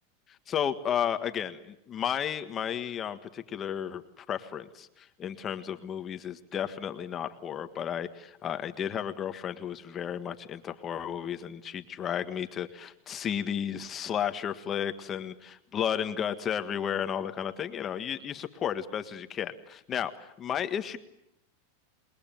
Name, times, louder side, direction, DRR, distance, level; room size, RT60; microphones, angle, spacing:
voice 1, 0.5-21.0, left 9 dB, 25° left, 9 dB, 1.6 m, -33 dB
28.5 x 21.0 x 9.2 m, 0.80 s
supercardioid pair, 145°, 0 cm